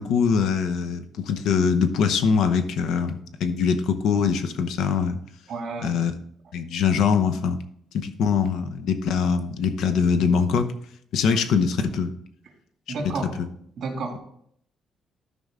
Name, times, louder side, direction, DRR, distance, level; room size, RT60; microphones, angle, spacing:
voice 1, 0.0-5.2 5.8-6.1 6.5-7.6 7.9-10.7 11.1-12.1 13.4-13.5, left 6 dB, 75° left, 10 dB, 0.8 m, -23 dB
voice 2, 5.5-6.0 12.9-13.3 13.8-14.2, right 3 dB, 50° right, 0 dB, 2.4 m, -31 dB
13.0 x 5.3 x 3.7 m, 0.67 s
cardioid pair, 170°, 0 cm